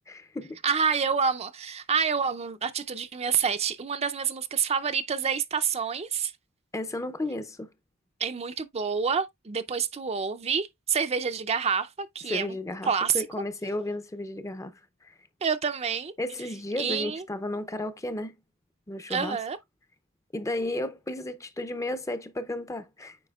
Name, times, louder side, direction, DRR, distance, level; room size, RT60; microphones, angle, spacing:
voice 1, 0.1-0.6 6.7-7.7 12.3-14.7 15.0-15.1 16.2-18.3 18.9-19.4 20.3-23.2, left 1 dB, 15° left, 0.5 m, -33 dB
voice 2, 0.6-6.3 8.2-12.6 12.9-13.3 15.4-16.1 16.8-17.2 19.1-19.6, right 6 dB, 30° right, 0.5 m, -28 dB
8.4 x 4.9 x 2.3 m
head